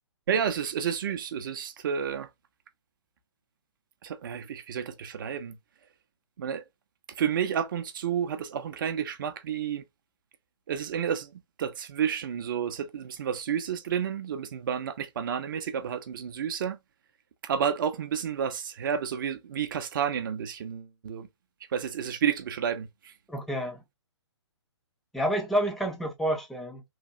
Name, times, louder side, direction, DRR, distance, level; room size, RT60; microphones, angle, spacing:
voice 1, 0.3-2.3 4.0-5.6 6.4-6.6 7.2-9.8 10.7-16.8 17.4-21.3 21.7-23.1, right 8 dB, 45° right, 0.6 m, -30 dB
voice 2, 23.3-23.8 25.1-26.8, equal, ahead, 0.4 m, -29 dB
3.2 x 2.3 x 2.5 m
figure-of-eight pair, 130°, 15 cm